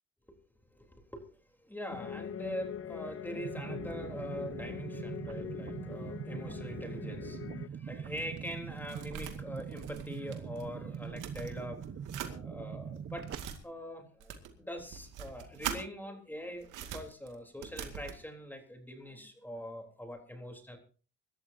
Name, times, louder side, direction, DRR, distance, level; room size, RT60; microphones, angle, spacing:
voice 1, 0.7-1.3 1.6-7.4 7.7-11.9 12.2-13.3 13.6-20.8, equal, 5° left, 3 dB, 3.7 m, -43 dB
sound 1, 1.9-7.7, left 8 dB, 45° left, 0.8 m, -42 dB
sound 2, 3.4-13.4, right 7 dB, 50° right, 1.2 m, -42 dB
sound 3, 7.9-10.7 10.9-12.3 13.0-13.6 14.2-15.8 16.6-18.2, right 9 dB, 90° right, 2.2 m, -43 dB
25.0 x 13.0 x 2.8 m, 0.37 s
cardioid pair, 90°, 30 cm